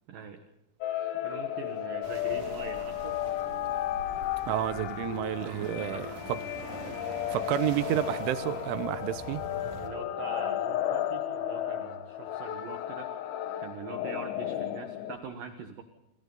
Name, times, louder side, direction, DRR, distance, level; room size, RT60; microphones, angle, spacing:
voice 1, 0.1-0.4 1.1-3.2 5.4-6.4 9.8-13.1 13.6-15.8, right 6 dB, 65° right, 2.4 m, -43 dB
sound 1, 0.8-15.2, left 12 dB, 85° left, 4.1 m, -34 dB
sound 2, 2.0-9.9, right 3 dB, 40° right, 3.1 m, -45 dB
voice 2, 4.5-6.4 7.3-9.4, right 13 dB, 80° right, 3.3 m, -30 dB
28.0 x 26.5 x 4.0 m
omnidirectional pair, 5.7 m